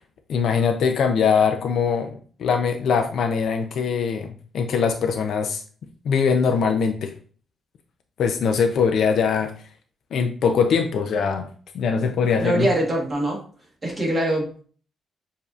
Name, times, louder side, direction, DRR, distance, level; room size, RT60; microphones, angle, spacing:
voice 1, 0.3-5.6 6.0-7.1 8.2-9.5 10.1-11.5 11.7-12.7, left 6 dB, 70° left, 6 dB, 0.4 m, -22 dB
voice 2, 12.4-13.4 13.8-14.6, right 1 dB, 20° right, -3 dB, 1.5 m, -23 dB
6.8 x 2.7 x 2.4 m, 0.43 s
cardioid pair, 135°, 0 cm